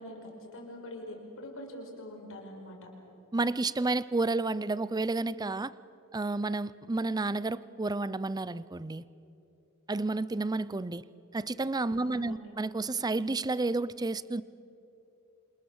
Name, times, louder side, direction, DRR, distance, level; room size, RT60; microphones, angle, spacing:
voice 1, 0.0-2.9 12.0-12.5, left 1 dB, 65° left, 2 dB, 5.4 m, -44 dB
voice 2, 3.3-5.7 6.1-9.0 9.9-11.0 11.3-14.4, right 3 dB, 20° right, 18 dB, 0.5 m, -31 dB
27.5 x 27.5 x 7.2 m, 2.8 s
head